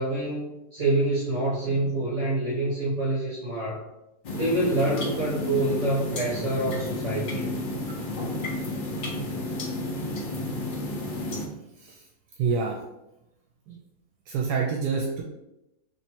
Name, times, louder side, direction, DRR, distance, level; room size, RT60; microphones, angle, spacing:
voice 1, 0.0-3.9 4.3-7.5, right 2 dB, 55° right, -5 dB, 1.1 m, -26 dB
sound 1, 4.2-11.5, left 2 dB, 65° left, 0.5 m, -31 dB
voice 2, 12.4-12.8 13.7-13.8 14.3-15.2, right 5 dB, 80° right, 0 dB, 1.1 m, -27 dB
3.2 x 2.9 x 4.3 m, 0.91 s
omnidirectional pair, 1.8 m